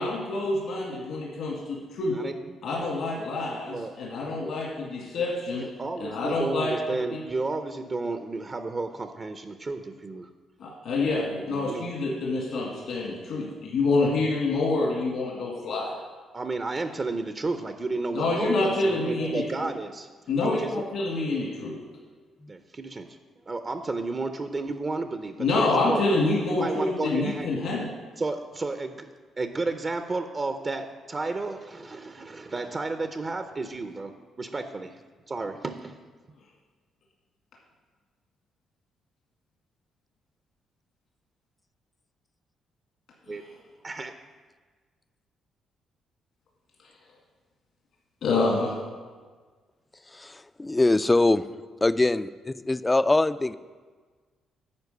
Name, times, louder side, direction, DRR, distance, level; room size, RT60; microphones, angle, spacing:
voice 1, 0.0-2.2 2.6-5.6 6.0-7.2 10.6-15.9 18.1-19.7 20.3-21.8 25.4-27.8 43.3-43.4 48.2-48.8, left 3 dB, 75° left, -3 dB, 1.8 m, -27 dB
voice 2, 5.6-10.3 11.0-11.1 11.4-11.9 16.3-20.1 20.4-20.8 22.5-23.2 23.5-26.0 26.6-27.5 28.2-29.1 29.4-34.9 35.3-36.0 43.3-43.4 43.8-44.1, right 3 dB, 30° right, 7 dB, 0.5 m, -32 dB
voice 3, 50.1-51.4 51.8-52.3 52.7-53.5, left 2 dB, 15° left, 14 dB, 0.3 m, -22 dB
9.7 x 4.5 x 6.6 m, 1.4 s
cardioid pair, 90°, 0 cm